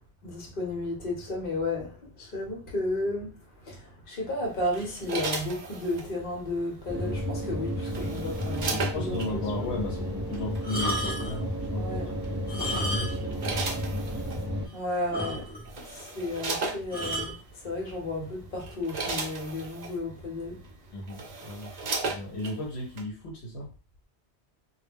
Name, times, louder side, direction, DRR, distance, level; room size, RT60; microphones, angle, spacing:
voice 1, 0.2-3.3 3.6-9.4 11.8-12.2 14.7-15.5 15.8-17.4 17.6-20.6, left 2 dB, 55° left, 1.1 m, -33 dB
sound 1, 4.7-6.1 7.4-9.3 10.3-10.6 12.2-12.5 13.1-14.4 15.3-15.4 15.7-17.1 17.9-18.0 18.5-20.0 20.6-20.7 21.0-22.6 23.0-23.1, right 3 dB, 50° right, 0.6 m, -35 dB
sound 2, 6.9-14.7, equal, 10° right, 1.0 m, -32 dB
voice 2, 8.9-12.0 12.3-13.4 20.9-21.7 22.0-23.7, left 1 dB, 75° left, 1.0 m, -35 dB
sound 3, 10.6-11.4 12.4-13.4 13.6-13.8 14.3-14.4 14.6-14.7 15.1-15.8 16.9-17.4 18.2-18.5, equal, 10° left, 0.6 m, -32 dB
2.3 x 2.2 x 3.4 m
omnidirectional pair, 1.1 m